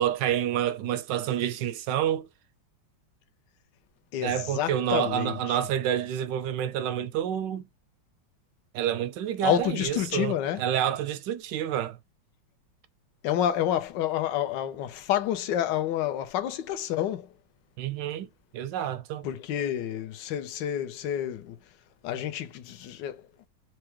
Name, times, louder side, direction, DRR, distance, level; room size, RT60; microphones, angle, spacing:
voice 1, 0.0-2.3 4.2-7.6 8.7-12.0 17.8-18.3 18.5-19.3, right 10 dB, 75° right, 1.0 m, -28 dB
voice 2, 4.1-5.6 9.4-10.7 13.2-17.3 19.2-21.6 22.0-23.2, left 11 dB, 70° left, 1.2 m, -29 dB
4.7 x 2.2 x 2.9 m
omnidirectional pair, 2.3 m